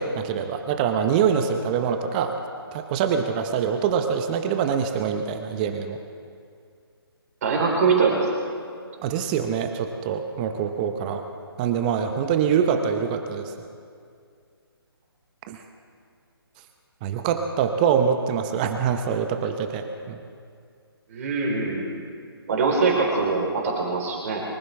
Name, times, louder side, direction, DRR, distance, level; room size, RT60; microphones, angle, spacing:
voice 1, 0.0-2.3 2.7-6.0 9.0-11.2 11.6-13.5 15.5-15.6 17.0-20.2, right 7 dB, 20° right, 7 dB, 0.9 m, -24 dB
voice 2, 7.4-8.2 21.1-22.0 22.5-24.4, right 4 dB, 40° right, -2 dB, 4.0 m, -23 dB
24.0 x 15.5 x 3.5 m, 2.3 s
figure-of-eight pair, 140°, 13 cm